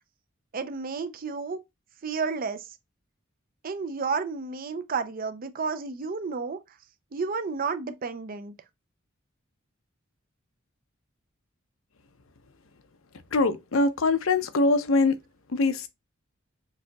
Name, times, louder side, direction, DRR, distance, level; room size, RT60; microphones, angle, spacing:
voice 1, 0.5-1.6 2.0-2.6 3.6-6.6 7.1-8.5, right 5 dB, 45° right, 0.5 m, -31 dB
voice 2, 13.3-15.1 15.5-15.9, left 3 dB, 80° left, 0.7 m, -23 dB
6.5 x 2.8 x 2.3 m
head